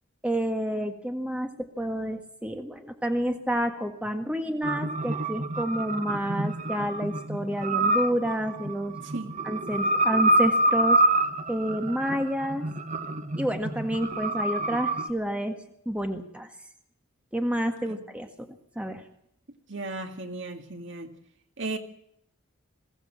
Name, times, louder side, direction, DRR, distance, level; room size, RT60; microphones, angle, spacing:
voice 1, 0.2-9.0 9.4-11.0 11.5-12.6 13.4-15.6 15.8-16.5 17.3-18.5 18.7-19.0, equal, 5° right, 1.6 m, -29 dB
sound 1, 4.6-15.1, right 1 dB, 35° right, 0.9 m, -27 dB
voice 2, 19.7-21.1 21.6-21.8, right 2 dB, 55° right, 2.1 m, -35 dB
22.0 x 16.5 x 7.6 m
head